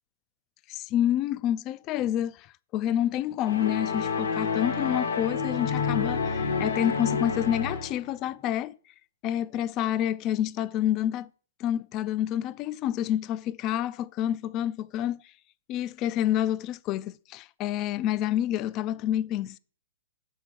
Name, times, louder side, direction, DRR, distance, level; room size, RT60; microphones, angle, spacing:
voice 1, 0.7-2.5 2.7-8.8 9.2-11.3 11.6-15.2 15.7-19.6, left 11 dB, 35° left, 0.3 m, -28 dB
sound 1, 3.5-8.1, left 5 dB, 90° left, 1.6 m, -29 dB
6.6 x 4.6 x 6.1 m
hypercardioid pair, 130°, 0 cm